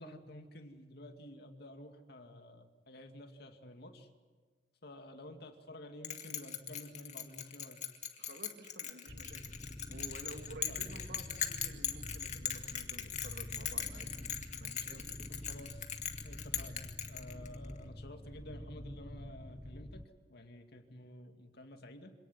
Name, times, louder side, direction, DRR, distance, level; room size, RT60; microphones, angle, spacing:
voice 1, 0.0-4.1 4.8-7.8 10.7-11.0 15.3-15.9 16.2-20.0 20.3-22.1, left 1 dB, 60° left, 6 dB, 2.4 m, -51 dB
Bell, 6.0-17.7, left 9 dB, 40° left, 2.0 m, -40 dB
voice 2, 8.2-9.5 9.9-14.2 14.6-15.3, right 2 dB, 65° right, 4 dB, 3.2 m, -52 dB
sound 1, 9.1-20.1, left 1 dB, 20° left, 0.9 m, -47 dB
26.5 x 18.5 x 9.6 m, 1.4 s
head